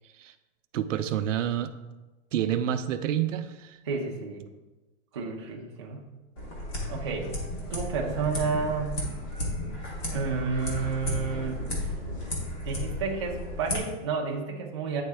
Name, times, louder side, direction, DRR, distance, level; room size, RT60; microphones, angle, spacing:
voice 1, 0.7-1.7 2.3-3.8, right 10 dB, 75° right, 10 dB, 0.6 m, -28 dB
voice 2, 3.8-4.5 5.1-6.1 6.9-7.3 7.7-9.1 10.1-11.9 12.6-15.0, right 5 dB, 25° right, -1 dB, 0.4 m, -31 dB
sound 1, 6.4-13.8, left 1 dB, 20° left, 0.8 m, -33 dB
9.1 x 3.6 x 3.3 m, 1.1 s
supercardioid pair, 175°, 39 cm